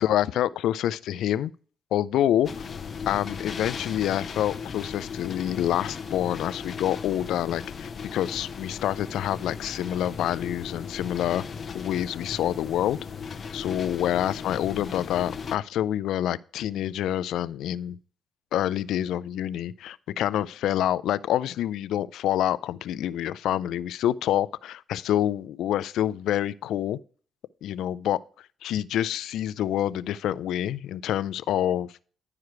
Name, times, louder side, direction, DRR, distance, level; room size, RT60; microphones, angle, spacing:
voice 1, 0.0-1.5 1.9-2.6 3.1-11.4 11.7-13.0 13.5-18.0 18.5-27.0 27.6-28.2 28.6-32.0, left 11 dB, 80° left, 0.3 m, -27 dB
sound 1, 2.4-15.6, left 5 dB, 45° left, 0.8 m, -37 dB
10.5 x 4.9 x 4.6 m
cardioid pair, 90°, 0 cm